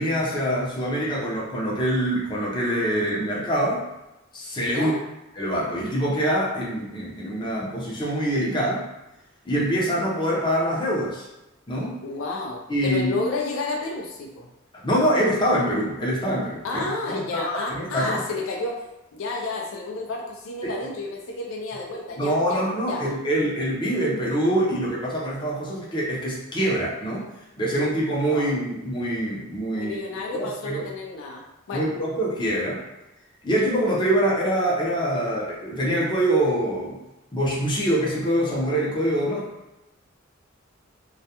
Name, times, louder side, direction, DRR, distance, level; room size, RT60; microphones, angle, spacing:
voice 1, 0.0-3.8 4.3-4.9 5.4-8.9 9.4-11.2 11.7-12.0 12.7-13.2 14.8-18.2 20.6-20.7 22.2-27.3 27.6-30.0 30.3-30.8 31.7-32.8 33.4-37.0 37.3-39.5, right 1 dB, 25° left, -5 dB, 0.6 m, -24 dB
voice 2, 4.7-5.0 12.0-14.5 16.6-18.8 19.1-23.0 28.3-28.5 29.7-31.9, left 3 dB, 70° left, 0 dB, 0.4 m, -31 dB
2.3 x 2.1 x 2.8 m, 0.97 s
head